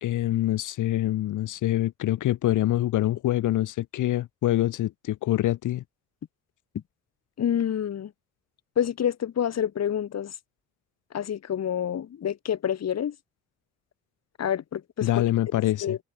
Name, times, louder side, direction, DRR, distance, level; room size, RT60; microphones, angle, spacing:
voice 1, 0.0-5.8 15.0-16.0, left 14 dB, 80° left, 3.6 m, -25 dB
voice 2, 7.4-8.1 8.8-10.4 11.1-13.2 14.4-15.1 15.8-16.0, left 9 dB, 60° left, 3.7 m, -27 dB
cardioid pair, 90°, 30 cm